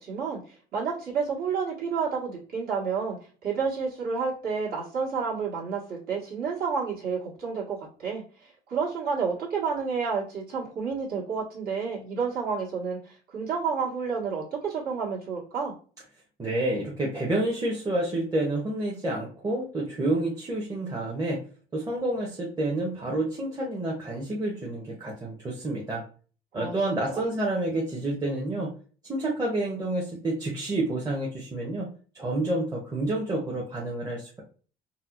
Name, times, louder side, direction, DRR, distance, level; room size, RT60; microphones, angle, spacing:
voice 1, 0.0-3.2 3.4-15.7 26.5-26.7 27.1-27.2, right 5 dB, 65° right, -4 dB, 1.4 m, -30 dB
voice 2, 16.4-21.4 21.7-26.0 26.5-28.7 29.0-31.9 32.1-34.4, right 2 dB, 20° right, -3 dB, 0.7 m, -29 dB
4.1 x 2.0 x 2.4 m, 0.40 s
cardioid pair, 110°, 17 cm